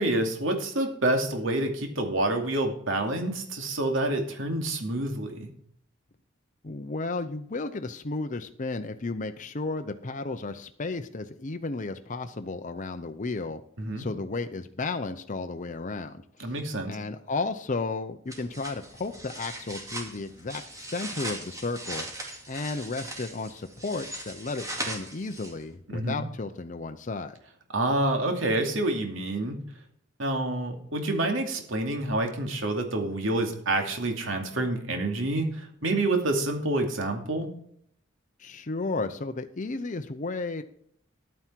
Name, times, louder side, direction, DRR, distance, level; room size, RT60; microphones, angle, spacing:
voice 1, 0.0-5.5 13.8-14.1 16.4-17.0 25.9-26.2 27.7-29.6 30.2-37.5, right 2 dB, 70° right, 4 dB, 2.6 m, -28 dB
voice 2, 6.6-13.6 14.0-16.5 16.9-22.1 22.5-27.4 38.4-40.6, left 3 dB, 40° left, 8 dB, 0.7 m, -33 dB
sound 1, 18.3-25.7, right 1 dB, 15° right, 2.5 m, -39 dB
11.5 x 9.6 x 4.6 m, 0.66 s
head